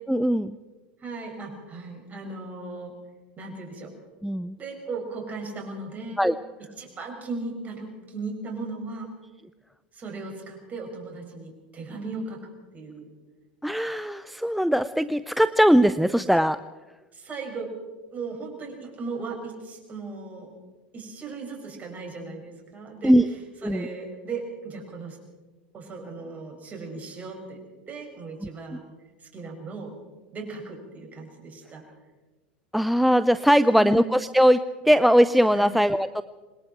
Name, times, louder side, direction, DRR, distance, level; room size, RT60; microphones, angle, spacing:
voice 1, 0.1-0.6 4.2-4.6 6.2-6.3 13.6-16.6 23.0-23.3 23.6-23.9 32.7-36.2, equal, ahead, 14 dB, 0.5 m, -20 dB
voice 2, 1.0-2.9 3.4-3.9 4.6-6.2 6.8-9.1 9.9-12.4 12.7-13.1 17.1-17.7 18.1-20.5 20.9-23.1 23.6-25.2 25.7-27.6 27.9-28.9 29.3-29.9 30.3-31.8 33.7-34.1 35.5-35.7, right 3 dB, 30° right, 2 dB, 6.9 m, -37 dB
27.0 x 20.5 x 4.6 m, 1.3 s
hypercardioid pair, 95°, 5 cm